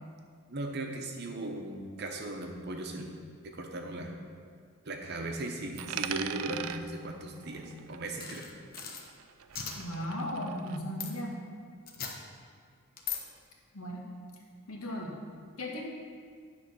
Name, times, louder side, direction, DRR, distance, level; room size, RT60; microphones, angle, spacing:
voice 1, 0.5-3.1 3.4-4.1 4.8-8.5, right 2 dB, 45° right, 2 dB, 0.9 m, -37 dB
Coin (dropping), 5.8-8.5 8.8-10.8, right 9 dB, 85° right, 0.4 m, -41 dB
sound 1, 8.2-9.0 9.5-9.7 11.0-11.1 11.9-12.1 13.0-13.2, left 7 dB, 40° left, 0.8 m, -37 dB
voice 2, 9.8-11.4 13.7-14.0 14.7-15.2 15.6-15.9, equal, 75° left, -2 dB, 1.4 m, -36 dB
9.9 x 3.9 x 6.1 m, 2.1 s
head